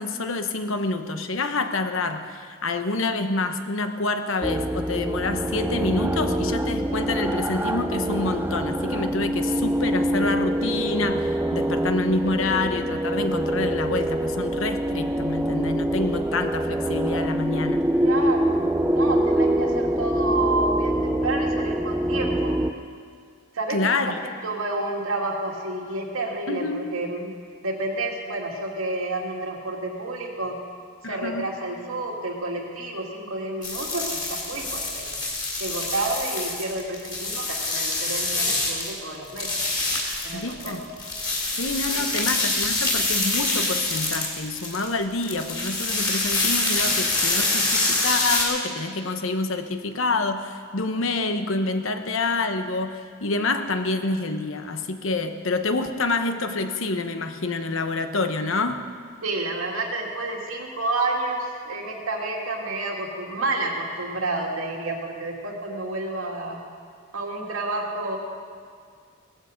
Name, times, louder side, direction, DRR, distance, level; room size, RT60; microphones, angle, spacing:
voice 1, 0.0-17.9 23.7-24.2 26.5-26.9 31.0-31.5 40.3-40.8 41.6-58.8, left 3 dB, 70° left, 8 dB, 1.0 m, -27 dB
sound 1, 4.4-22.7, right 1 dB, 10° right, 0.4 m, -25 dB
voice 2, 18.0-22.5 23.5-23.8 24.4-27.3 27.6-30.6 31.0-35.2 35.6-39.5 40.2-40.8 41.9-42.2 59.2-66.6 67.1-68.2, right 2 dB, 85° right, -1 dB, 2.5 m, -30 dB
sound 2, 33.6-39.0 39.3-48.4, left 2 dB, 20° left, 3.3 m, -26 dB
17.5 x 14.5 x 5.2 m, 2.1 s
head